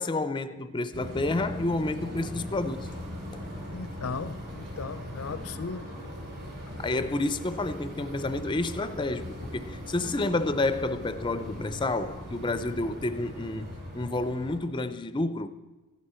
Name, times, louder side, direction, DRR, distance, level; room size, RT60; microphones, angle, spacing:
voice 1, 0.0-2.9 3.3-3.4 6.8-15.5, left 2 dB, 20° left, 0.5 m, -30 dB
sound 1, 0.9-14.6, equal, 50° right, 5.3 m, -40 dB
voice 2, 3.7-5.9, left 4 dB, 70° left, 0.6 m, -37 dB
15.0 x 11.5 x 4.4 m
head